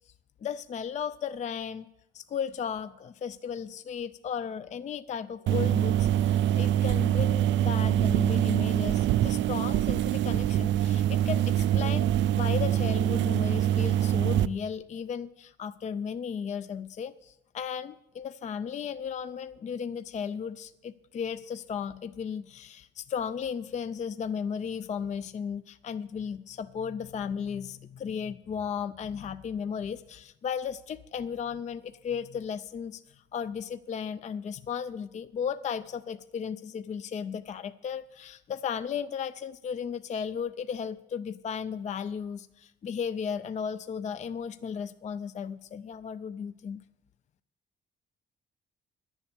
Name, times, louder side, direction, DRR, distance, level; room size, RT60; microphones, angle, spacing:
voice 1, 0.4-1.9 2.1-46.8, left 7 dB, 35° left, 13 dB, 0.4 m, -35 dB
sound 1, 5.5-14.5, right 11 dB, 70° right, 0.4 m, -25 dB
10.5 x 7.1 x 8.3 m, 0.88 s
cardioid pair, 90°, 20 cm